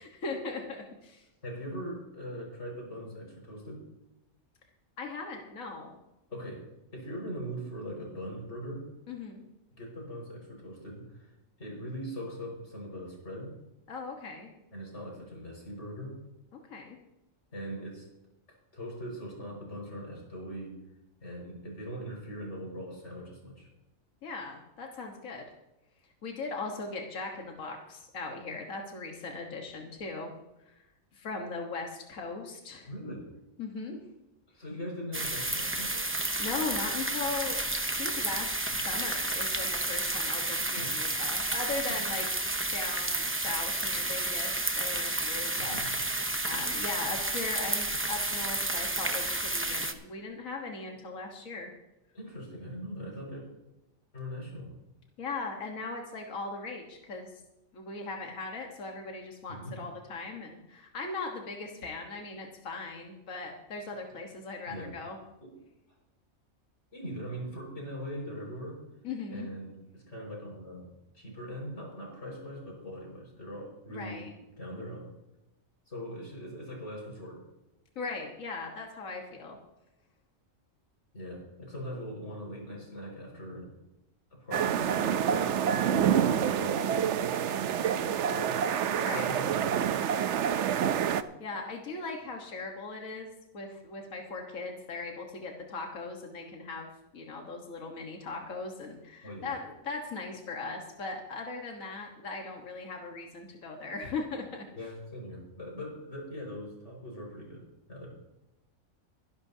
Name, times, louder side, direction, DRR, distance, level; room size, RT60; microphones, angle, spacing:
voice 1, 0.0-1.2 5.0-5.9 9.1-9.4 13.9-14.5 16.7-17.0 24.2-25.4 26.2-30.3 31.1-32.9 33.6-34.0 36.4-42.2 42.5-51.7 55.2-57.3 57.7-65.2 69.0-69.5 73.9-74.3 77.9-79.6 85.9-86.4 88.9-89.4 91.4-104.7, left 3 dB, 75° left, 1 dB, 1.8 m, -39 dB
voice 2, 1.4-3.9 6.3-6.7 6.9-8.8 9.8-13.6 14.7-16.2 17.5-18.1 18.5-20.8 21.2-23.7 32.9-33.3 34.5-36.1 40.7-40.9 41.9-42.1 45.6-45.9 52.1-53.4 54.1-54.7 59.5-59.8 64.7-65.0 65.4-65.5 66.9-68.8 69.3-74.3 74.6-75.1 75.9-77.4 81.1-83.7 84.3-85.7 86.3-88.6 88.9-90.2 99.2-99.5 104.7-108.1, equal, 55° left, -2 dB, 5.8 m, -41 dB
sound 1, 35.1-49.9, right 2 dB, 15° right, 0.5 m, -31 dB
sound 2, 84.5-91.2, right 9 dB, 65° right, 0.9 m, -27 dB
23.0 x 11.5 x 2.8 m, 0.95 s
omnidirectional pair, 1.4 m